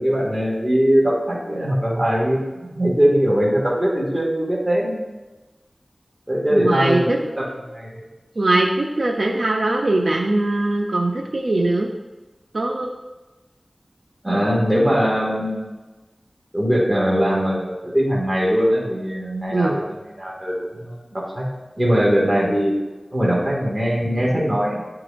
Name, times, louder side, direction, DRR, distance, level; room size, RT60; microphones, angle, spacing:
voice 1, 0.0-5.0 6.3-7.5 7.7-8.0 14.2-15.6 16.5-20.5 20.8-21.4 21.8-22.7 23.1-24.8, equal, 25° right, -5 dB, 2.0 m, -21 dB
voice 2, 6.5-7.2 8.4-11.9 12.5-12.9 19.5-19.8, right 2 dB, 75° right, -1 dB, 0.6 m, -21 dB
9.6 x 4.8 x 2.5 m, 1.2 s
wide cardioid pair, 50°, 0 cm